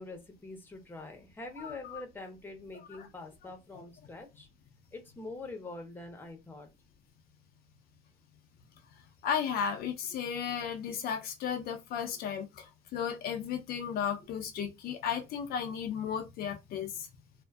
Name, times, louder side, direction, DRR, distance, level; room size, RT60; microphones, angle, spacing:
voice 1, 0.0-4.5 4.9-6.7, left 2 dB, 10° left, 0.7 m, -45 dB
voice 2, 1.6-2.0 2.9-3.1 3.7-3.8 9.2-12.7 12.9-17.1, left 7 dB, 65° left, 0.5 m, -34 dB
2.5 x 2.4 x 2.2 m
cardioid pair, 110°, 17 cm